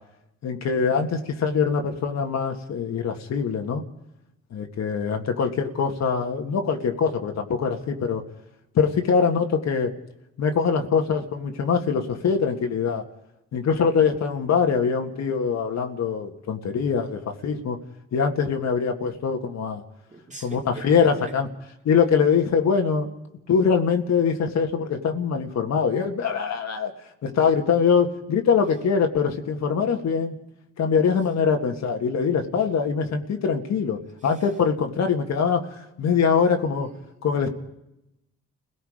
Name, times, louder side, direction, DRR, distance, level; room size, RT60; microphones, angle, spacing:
voice 1, 0.4-3.8 4.5-8.2 8.7-9.9 10.4-13.0 13.5-17.8 18.1-19.8 20.4-21.5 21.9-23.1 23.5-26.9 27.2-30.4 30.8-36.9 37.2-37.5, left 6 dB, 60° left, 1.8 m, -23 dB
voice 2, 20.1-21.3 32.6-32.7, right 4 dB, 25° right, 2.9 m, -41 dB
29.5 x 17.5 x 5.1 m
cardioid pair, 90°, 30 cm